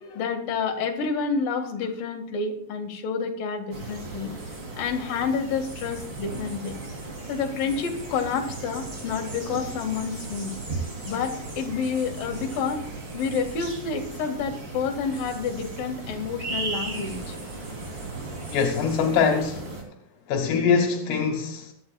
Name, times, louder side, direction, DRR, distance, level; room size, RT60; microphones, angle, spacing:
voice 1, 0.1-4.3 4.8-6.7 7.3-10.5 11.1-12.8 13.1-17.4, left 5 dB, 60° left, 3.4 m, -29 dB
sound 1, 3.7-19.8, right 3 dB, 30° right, 3.5 m, -36 dB
voice 2, 18.5-19.7 20.3-21.7, left 6 dB, 80° left, 3.3 m, -23 dB
22.5 x 11.5 x 2.3 m
omnidirectional pair, 4.7 m